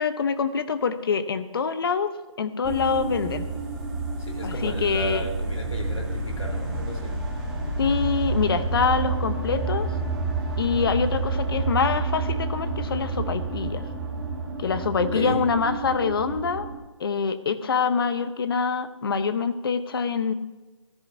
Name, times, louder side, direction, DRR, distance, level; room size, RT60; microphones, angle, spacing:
voice 1, 0.0-2.1 2.4-3.5 4.4-5.3 7.8-9.9 10.6-13.8 14.6-16.7 17.0-20.3, left 5 dB, 45° left, 11 dB, 0.9 m, -25 dB
sound 1, 2.6-16.8, right 3 dB, ahead, 1.8 m, -29 dB
voice 2, 4.3-7.2 15.1-15.5, equal, 90° left, 2 dB, 3.9 m, -33 dB
17.5 x 14.0 x 2.8 m, 1.2 s
hypercardioid pair, 160°, 16 cm